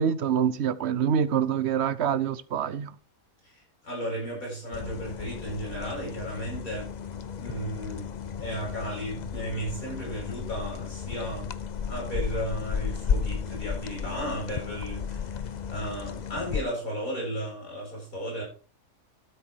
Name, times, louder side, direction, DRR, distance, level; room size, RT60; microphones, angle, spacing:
voice 1, 0.0-2.9, right 8 dB, 55° right, 1.0 m, -25 dB
voice 2, 3.8-6.9 7.4-8.1 8.4-11.5 11.9-15.4 15.7-18.4, right 1 dB, 75° left, 8.0 m, -34 dB
sound 1, 4.7-16.6, left 6 dB, 45° left, 0.6 m, -34 dB
13.0 x 8.2 x 4.7 m
omnidirectional pair, 1.5 m